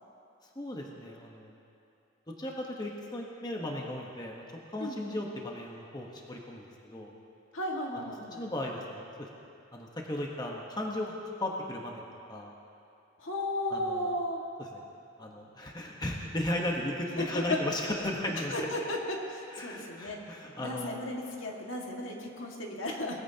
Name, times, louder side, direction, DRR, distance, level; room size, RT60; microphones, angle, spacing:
voice 1, 0.6-1.6 2.4-4.4 4.7-7.1 8.0-8.1 8.4-9.3 9.7-12.5 13.7-14.1 14.6-14.8 15.2-18.5 19.5-21.0, left 1 dB, 20° left, -1 dB, 1.1 m, -36 dB
voice 2, 4.8-5.2 7.5-8.4 13.2-14.4 17.2-17.6 18.5-20.2 20.6-23.2, left 1 dB, 75° left, -1 dB, 1.8 m, -34 dB
20.5 x 14.5 x 2.8 m, 2.6 s
head